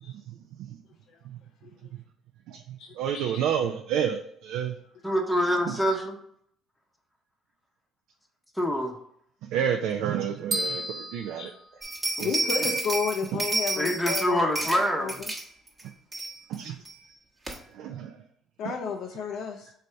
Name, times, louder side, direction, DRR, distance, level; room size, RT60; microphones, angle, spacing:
voice 1, 0.1-0.8 1.2-1.4 2.5-4.8 5.7-5.8 9.5-11.5 12.2-12.8 16.5-16.8 17.7-18.2 18.6-18.8, right 8 dB, 75° right, 4 dB, 0.3 m, -30 dB
voice 2, 2.8-3.4 11.4-11.5 12.2-15.3 18.6-19.7, left 6 dB, 70° left, 3 dB, 0.4 m, -33 dB
voice 3, 5.0-6.2 8.6-9.0 13.8-15.2, equal, ahead, 0 dB, 0.8 m, -25 dB
sound 1, 10.5-12.4, right 1 dB, 45° right, 0.8 m, -34 dB
sound 2, 11.8-14.3 14.6-14.8 15.1-15.4 15.8-15.9 16.1-16.5 16.9-17.0 17.5-17.6, right 2 dB, 20° right, 1.0 m, -30 dB
3.2 x 2.7 x 4.4 m, 0.67 s
supercardioid pair, 80°, 0 cm